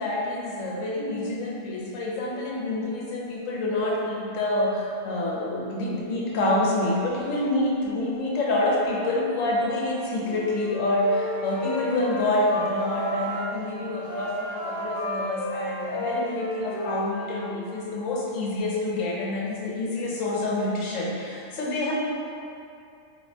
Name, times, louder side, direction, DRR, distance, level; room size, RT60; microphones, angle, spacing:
voice 1, 0.0-21.9, left 1 dB, 85° left, -4 dB, 1.1 m, -27 dB
Wind instrument woodwind instrument, 10.1-13.4 14.0-17.6, equal, 5° right, 1.4 m, -33 dB
3.6 x 2.7 x 3.2 m, 2.6 s
omnidirectional pair, 1.3 m